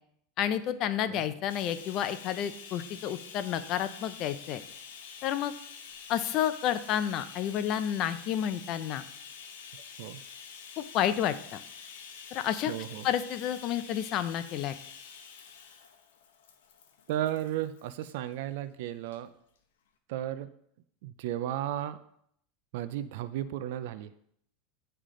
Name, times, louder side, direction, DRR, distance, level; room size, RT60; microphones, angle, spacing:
voice 1, 0.4-4.6 5.2-5.5 6.1-9.0 10.8-11.6 12.3-12.7 13.0-14.7, left 10 dB, 45° left, 12 dB, 0.5 m, -30 dB
Bathtub (filling or washing), 1.5-18.1 19.0-19.2 19.6-19.7, left 6 dB, 90° left, 0.8 m, -47 dB
voice 2, 12.7-13.1 17.1-19.3 20.1-20.5 21.0-22.0 22.7-24.1, right 12 dB, 70° right, 12 dB, 0.4 m, -34 dB
9.9 x 3.3 x 3.7 m, 0.70 s
supercardioid pair, 145°, 0 cm